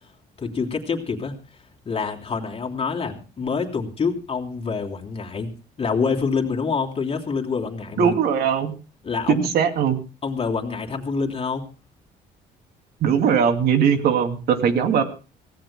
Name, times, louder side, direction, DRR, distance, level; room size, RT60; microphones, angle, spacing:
voice 1, 0.4-1.4 1.8-5.5 5.8-8.1 9.0-9.5 10.2-11.6, left 5 dB, 35° left, 1 dB, 3.2 m, -26 dB
voice 2, 8.0-8.7 9.3-10.0 13.0-15.0, right 7 dB, 70° right, 6 dB, 2.6 m, -20 dB
25.5 x 17.0 x 2.2 m, 0.34 s
cardioid pair, 110°, 17 cm